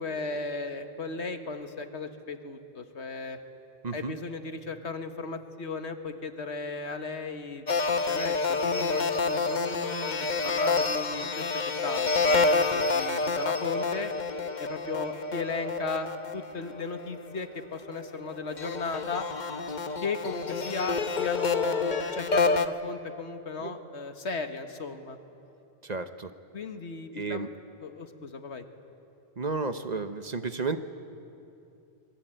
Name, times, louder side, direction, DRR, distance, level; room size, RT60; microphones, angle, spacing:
voice 1, 0.0-3.4 3.9-14.1 14.6-19.3 20.0-25.2 26.5-27.5 27.8-28.7, left 4 dB, 75° left, 7 dB, 1.8 m, -36 dB
sound 1, 7.7-17.3 18.0-22.7, left 4 dB, 45° left, 1.0 m, -28 dB
voice 2, 25.8-26.3 27.1-27.5 29.4-30.8, right 4 dB, 40° right, 9 dB, 1.0 m, -32 dB
25.5 x 22.0 x 9.1 m, 2.6 s
omnidirectional pair, 1.1 m